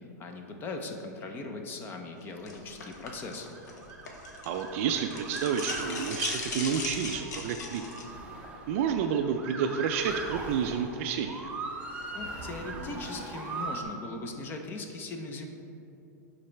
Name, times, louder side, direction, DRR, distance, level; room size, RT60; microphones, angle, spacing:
voice 1, 0.2-3.5 12.1-15.5, left 3 dB, 20° left, 4 dB, 0.6 m, -39 dB
sound 1, 2.5-4.6 4.9-8.0, left 4 dB, 80° left, 1.1 m, -37 dB
Motor vehicle (road) / Siren, 2.7-13.8, right 3 dB, 15° right, 0.7 m, -40 dB
voice 2, 4.5-7.8 8.7-11.5, right 7 dB, 50° right, 5 dB, 0.4 m, -30 dB
11.0 x 4.0 x 3.3 m, 2.8 s
supercardioid pair, 145°, 9 cm